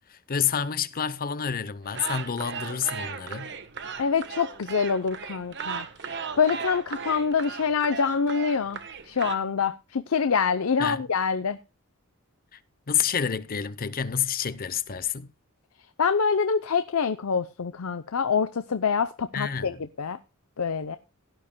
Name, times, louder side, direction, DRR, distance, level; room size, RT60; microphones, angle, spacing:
voice 1, 0.1-3.5 10.8-11.0 12.5-12.6 12.9-15.3 19.3-19.8, left 7 dB, 45° left, 0.7 m, -29 dB
sound 1, 1.9-9.4, right 6 dB, 55° right, 1.1 m, -36 dB
voice 2, 4.0-8.8 9.0-11.6 16.0-20.2 20.6-21.0, left 6 dB, 80° left, 0.6 m, -26 dB
17.0 x 11.5 x 2.2 m
head